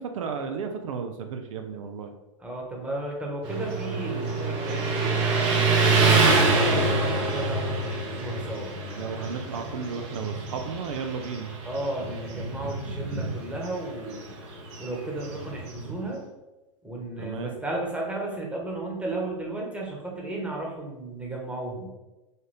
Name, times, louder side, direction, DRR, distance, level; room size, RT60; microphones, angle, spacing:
voice 1, 0.0-2.1 8.8-11.6 17.2-17.5, right 6 dB, 75° right, 6 dB, 0.5 m, -33 dB
voice 2, 2.4-5.5 6.1-8.7 11.6-14.3 14.8-16.2 16.8-21.9, right 2 dB, 5° right, -2 dB, 1.0 m, -34 dB
Motorcycle, 3.4-16.1, right 3 dB, 55° right, 0.9 m, -26 dB
4.1 x 2.5 x 3.3 m, 1.1 s
hypercardioid pair, 105°, 17 cm